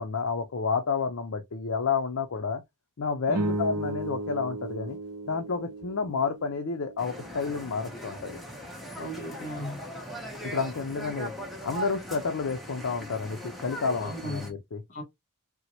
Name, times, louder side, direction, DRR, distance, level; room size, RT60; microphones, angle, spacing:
voice 1, 0.0-2.6 3.0-5.0 5.3-8.4 9.0-9.1 10.4-11.3 11.6-14.8, left 5 dB, 65° left, 0.5 m, -30 dB
sound 1, 3.3-7.8, right 1 dB, 90° right, 0.6 m, -35 dB
sound 2, 7.0-14.5, equal, ahead, 0.8 m, -40 dB
voice 2, 9.0-9.8 14.0-14.5 14.9-15.0, equal, 40° left, 1.9 m, -36 dB
4.4 x 2.1 x 2.7 m
head